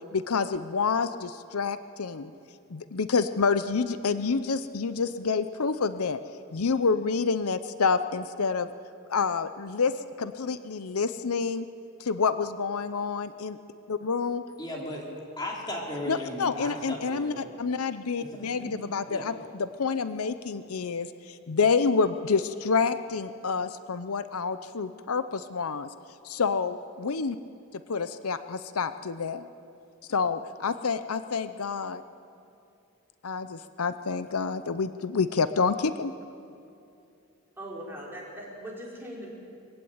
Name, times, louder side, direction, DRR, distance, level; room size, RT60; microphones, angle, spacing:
voice 1, 0.1-2.3 2.7-6.2 6.5-8.7 9.1-11.7 12.0-13.6 13.9-14.4 16.1-25.9 26.2-27.4 27.9-29.5 30.1-32.0 33.2-36.1, left 5 dB, 85° left, 12 dB, 0.7 m, -28 dB
voice 2, 14.6-15.1 15.4-17.5 18.2-19.3, left 1 dB, 20° left, -2 dB, 3.6 m, -37 dB
voice 3, 37.6-39.3, equal, 10° right, -4 dB, 4.4 m, -40 dB
22.0 x 16.0 x 8.9 m, 2.6 s
head